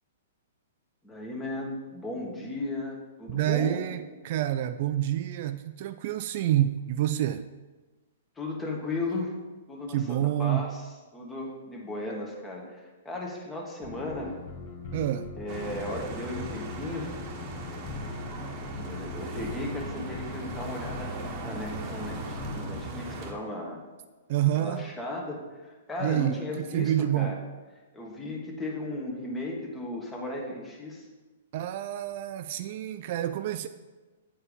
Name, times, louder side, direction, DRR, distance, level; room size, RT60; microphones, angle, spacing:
voice 1, 1.0-3.9 8.4-9.3 9.7-10.8 11.1-14.4 15.4-17.2 18.7-21.2 21.4-23.8 24.5-27.4 27.9-31.0, left 2 dB, 10° left, -1 dB, 1.6 m, -36 dB
voice 2, 3.3-7.5 9.9-10.6 14.9-15.3 24.3-24.9 26.0-27.4 31.5-33.7, right 12 dB, 50° right, 11 dB, 0.3 m, -28 dB
sound 1, 13.8-22.8, left 3 dB, 55° left, 1.5 m, -40 dB
sound 2, 15.5-23.3, right 2 dB, 35° right, 1.2 m, -39 dB
8.5 x 4.4 x 5.2 m, 1.2 s
hypercardioid pair, 130°, 0 cm